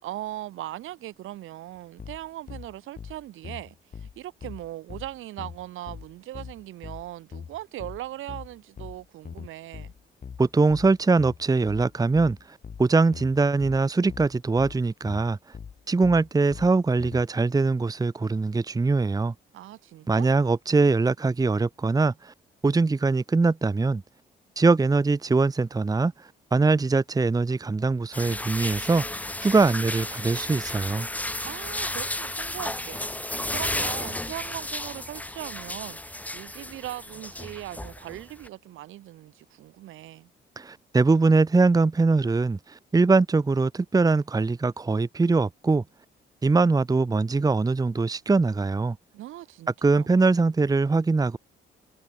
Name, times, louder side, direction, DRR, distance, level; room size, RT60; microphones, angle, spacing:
voice 1, 0.0-9.9 19.5-20.3 31.4-33.0 33.5-40.3 49.1-50.1, right 15 dB, 85° right, 7.9 m, -39 dB
sound 1, 2.0-17.2, left 6 dB, 45° left, 2.2 m, -41 dB
voice 2, 10.4-15.4 15.9-19.3 20.1-22.3 22.6-24.0 24.6-26.1 26.5-29.0 29.4-31.1 40.6-45.8 46.4-49.0 49.8-51.4, right 3 dB, 20° right, 0.9 m, -22 dB
sound 2, 28.1-38.5, left 1 dB, 5° left, 1.0 m, -33 dB
cardioid pair, 90°, 20 cm